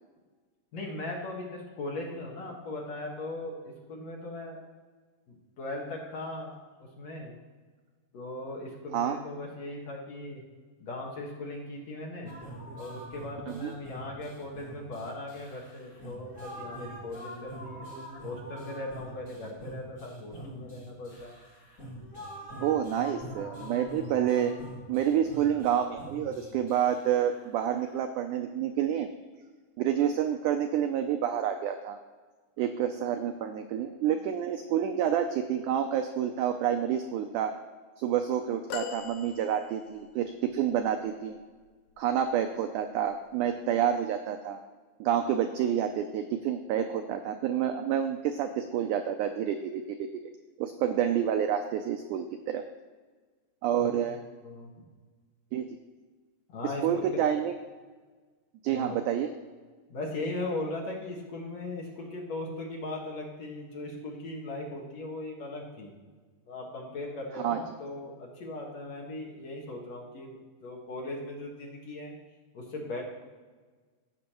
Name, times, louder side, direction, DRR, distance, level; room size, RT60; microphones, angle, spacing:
voice 1, 0.7-4.6 5.3-6.5 7.0-7.4 8.1-10.4 10.8-12.4 12.8-17.9 18.2-21.4 53.8-54.2 54.4-54.8 56.5-57.3 58.7-59.0 59.9-65.9 66.5-72.2 72.5-73.0, left 2 dB, 55° left, -1 dB, 2.3 m, -38 dB
sound 1, 12.3-28.0, right 1 dB, 30° left, 2.1 m, -45 dB
voice 2, 22.6-24.5 24.9-29.1 29.8-32.0 32.6-37.5 38.0-41.4 42.0-44.6 45.0-50.1 50.6-52.6 53.6-54.2 55.5-55.7 56.8-57.5 58.6-59.3 67.3-67.6, right 9 dB, 85° right, 6 dB, 1.8 m, -28 dB
sound 2, 38.7-40.1 40.8-40.9, left 8 dB, 90° left, 2.4 m, -40 dB
16.5 x 6.2 x 3.0 m, 1.4 s
omnidirectional pair, 4.1 m